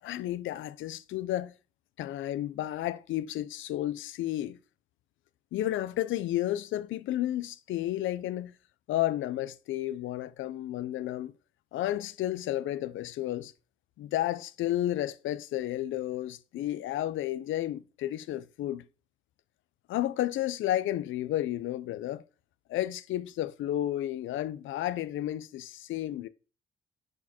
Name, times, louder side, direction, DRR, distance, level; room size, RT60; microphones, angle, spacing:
voice 1, 0.0-1.5 2.0-4.6 5.5-8.6 8.9-11.3 11.7-13.5 14.0-18.8 19.9-22.2 22.7-26.3, left 13 dB, 80° left, 0.7 m, -32 dB
11.0 x 4.7 x 4.3 m
cardioid pair, 90°, 20 cm